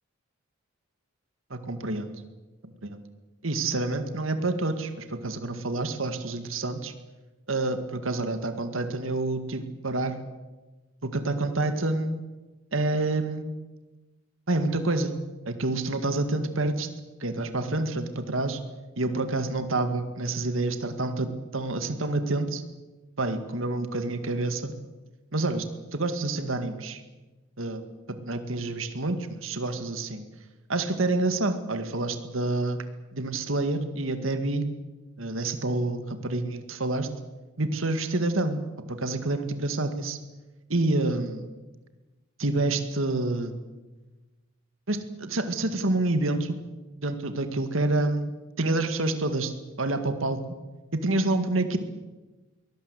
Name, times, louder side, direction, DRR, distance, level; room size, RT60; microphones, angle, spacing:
voice 1, 1.5-2.1 2.6-3.0 3.4-6.9 7.5-10.2 11.0-12.2 12.7-13.5 14.5-15.2 15.5-16.9 17.2-18.6 19.0-22.6 23.2-24.7 25.3-27.0 27.6-27.8 28.1-30.2 30.7-32.8 33.1-34.7 35.2-37.1 37.6-38.6 38.9-40.2 40.7-41.5 42.4-43.5 44.9-46.6 47.0-48.3 48.6-49.5 49.8-50.4 51.0-51.8, right 2 dB, 75° right, 9 dB, 2.1 m, -28 dB
23.5 x 18.5 x 8.2 m, 1.2 s
head